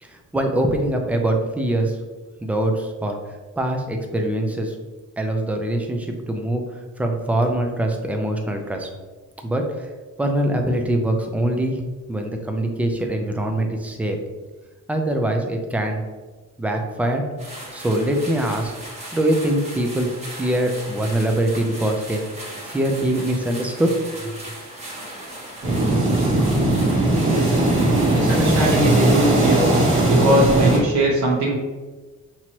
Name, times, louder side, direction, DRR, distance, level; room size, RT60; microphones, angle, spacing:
voice 1, 0.0-2.0 2.4-3.2 3.6-4.8 5.2-6.6 7.0-8.9 9.4-9.9 10.2-11.8 12.1-14.2 14.9-16.0 16.6-17.2 17.7-18.7 19.1-20.1 20.4-22.2 22.6-23.9 24.2-24.4, right 1 dB, 5° right, 3 dB, 0.4 m, -23 dB
sound 1, 17.4-28.8, right 1 dB, 20° right, 1.2 m, -37 dB
sound 2, 25.6-30.8, right 2 dB, 40° right, 1.2 m, -18 dB
voice 2, 27.2-27.6 28.1-29.6 30.1-31.5, right 1 dB, 65° right, -5 dB, 1.0 m, -20 dB
6.0 x 3.0 x 2.9 m, 1.3 s
cardioid pair, 140°, 31 cm